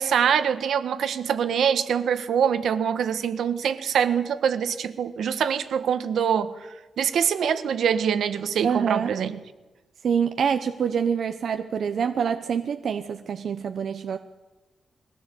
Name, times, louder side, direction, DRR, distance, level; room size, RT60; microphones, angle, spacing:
voice 1, 0.0-6.6 7.0-9.3, right 8 dB, 80° right, 11 dB, 1.5 m, -24 dB
voice 2, 8.6-9.1 10.0-14.2, right 7 dB, 55° right, 7 dB, 0.9 m, -26 dB
22.5 x 17.5 x 8.4 m, 1.2 s
wide cardioid pair, 175°, 0 cm